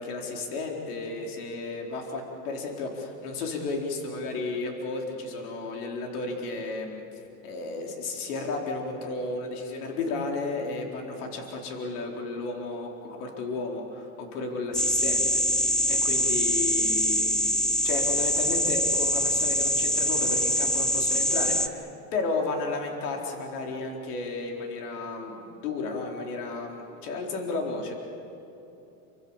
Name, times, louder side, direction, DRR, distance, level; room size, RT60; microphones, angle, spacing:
voice 1, 0.0-7.0 7.4-15.4 15.9-27.9, left 3 dB, 85° left, 1 dB, 4.4 m, -33 dB
sound 1, 14.7-21.7, equal, ahead, 0.7 m, -24 dB
28.0 x 26.0 x 7.4 m, 3.0 s
supercardioid pair, 140°, 44 cm